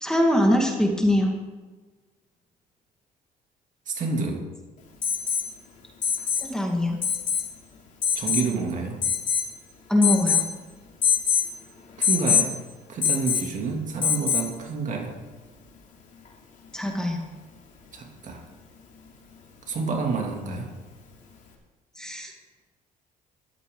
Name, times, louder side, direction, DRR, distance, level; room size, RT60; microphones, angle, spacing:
voice 1, 0.0-1.3 6.4-7.0 9.9-10.4 16.7-17.2 22.0-22.3, left 1 dB, 5° left, 1 dB, 2.0 m, -22 dB
voice 2, 3.9-4.4 8.2-9.0 12.0-12.6 12.9-15.2 17.9-18.4 19.7-20.7, right 4 dB, 50° right, 1 dB, 2.7 m, -28 dB
Alarm, 5.0-5.5 6.0-6.5 7.0-7.5 8.0-8.5 9.0-9.5 10.0-10.5 11.0-11.5 12.0-12.5 13.0-13.5 14.0-14.5 16.2-16.3, left 8 dB, 50° left, 3.1 m, -23 dB
13.5 x 12.5 x 3.9 m, 1.3 s
cardioid pair, 110°, 17 cm